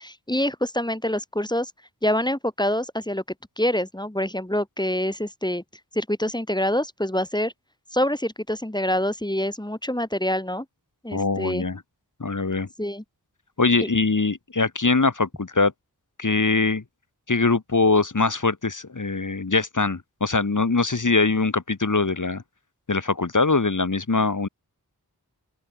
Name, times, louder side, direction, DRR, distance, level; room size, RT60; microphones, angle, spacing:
voice 1, 0.0-1.7 2.0-3.2 3.6-5.6 6.0-7.5 7.9-10.7 11.0-11.6 12.8-13.0 13.8-13.9, left 1 dB, 10° left, 1.9 m, -26 dB
voice 2, 11.1-11.8 12.2-12.7 13.6-15.7 16.2-16.8 17.3-22.4 22.9-24.5, left 3 dB, 50° left, 1.8 m, -22 dB
open air
wide cardioid pair, 45°, 39 cm